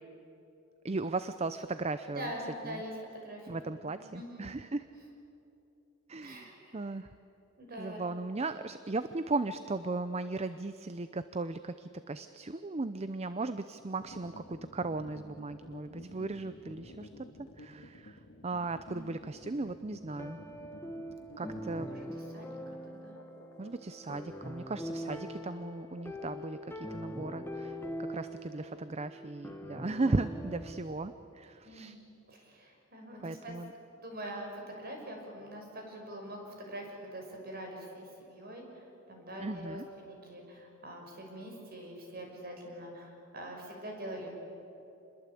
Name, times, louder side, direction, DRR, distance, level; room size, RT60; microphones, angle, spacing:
voice 1, 0.8-2.3 2.6-2.8 3.5-4.9 6.1-7.1 7.8-17.1 17.4-18.2 18.4-20.4 21.4-21.9 23.6-27.8 28.1-32.0 33.2-33.7 39.4-39.8, right 3 dB, 30° right, 12 dB, 0.6 m, -36 dB
voice 2, 2.1-3.6 3.9-4.5 4.9-5.0 6.2-6.9 7.6-8.0 18.9-19.0 21.4-22.5 22.9-23.2 31.6-33.6 34.0-34.5 34.8-44.3, equal, 45° right, 1 dB, 6.1 m, -44 dB
sound 1, 14.0-28.8, left 1 dB, 85° left, 2.2 m, -53 dB
sound 2, 20.1-30.8, equal, 10° left, 1.5 m, -42 dB
28.0 x 21.5 x 8.5 m, 2.9 s
head